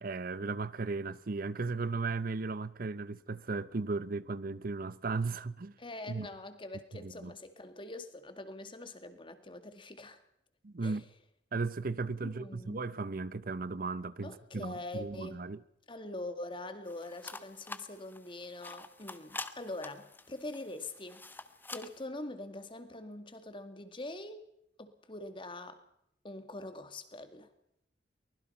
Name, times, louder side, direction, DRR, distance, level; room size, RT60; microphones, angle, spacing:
voice 1, 0.0-5.7 6.1-6.3 6.9-7.3 10.6-11.0 11.5-15.6, right 3 dB, 55° right, 0.7 m, -36 dB
voice 2, 5.8-10.2 10.8-11.0 12.2-12.8 14.2-15.5 15.9-21.2 21.7-24.4 24.8-25.8 26.2-27.5, left 2 dB, 30° left, 2.1 m, -44 dB
sound 1, 16.9-22.0, left 3 dB, 10° left, 1.0 m, -47 dB
24.0 x 20.0 x 5.6 m
head